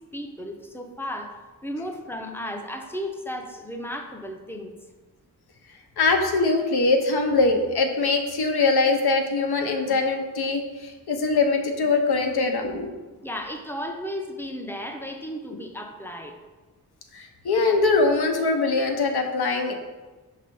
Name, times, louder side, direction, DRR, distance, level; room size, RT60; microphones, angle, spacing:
voice 1, 0.1-1.4 1.6-4.7 13.2-16.4, equal, 5° left, 4 dB, 0.5 m, -34 dB
voice 2, 6.0-13.0 17.1-19.7, left 3 dB, 85° left, 4 dB, 0.8 m, -22 dB
5.6 x 3.3 x 5.3 m, 1.3 s
wide cardioid pair, 155°, 38 cm